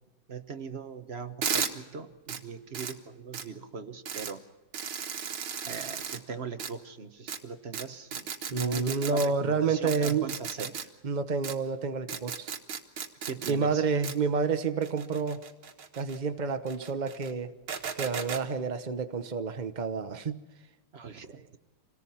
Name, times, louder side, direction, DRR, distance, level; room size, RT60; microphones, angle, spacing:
voice 1, 0.3-4.4 5.6-10.9 13.3-13.9 20.9-21.6, right 5 dB, 35° right, 8 dB, 1.2 m, -40 dB
sound 1, 1.4-1.7 2.3-2.4 2.7-2.9 3.3-3.4 4.1-4.3 4.7-6.2 6.6-6.7 7.3-7.4 7.7-7.8 8.1-9.3 9.9-10.8 11.4-11.5 12.1-13.5 14.0-14.1 14.8-16.2 16.7-17.3 17.7-18.4, right 7 dB, 75° right, 2.3 m, -35 dB
voice 2, 8.5-10.3 11.0-12.5 13.5-15.4 15.9-17.5 18.0-20.4, right 5 dB, 55° right, 8 dB, 0.4 m, -29 dB
26.5 x 18.5 x 5.8 m, 1.1 s
omnidirectional pair, 2.3 m